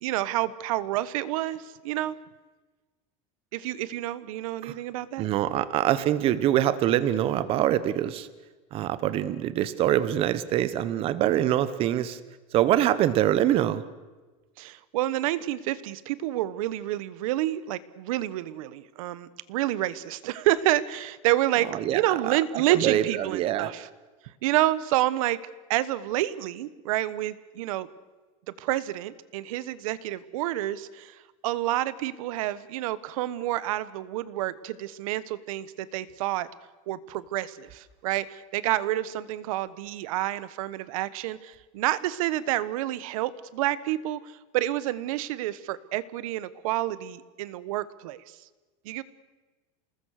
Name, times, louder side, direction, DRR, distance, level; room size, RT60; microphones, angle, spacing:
voice 1, 0.0-2.1 3.5-5.3 14.6-21.7 21.9-23.9 24.4-25.4 25.7-27.9 28.6-31.2 31.4-36.5 36.9-48.2 48.8-49.0, right 14 dB, 75° right, 17 dB, 1.3 m, -29 dB
voice 2, 5.2-8.3 8.7-12.2 12.5-13.8 21.7-22.4 22.7-23.7, right 12 dB, 30° right, 15 dB, 1.1 m, -24 dB
27.5 x 20.0 x 6.6 m, 1.3 s
supercardioid pair, 170°, 18 cm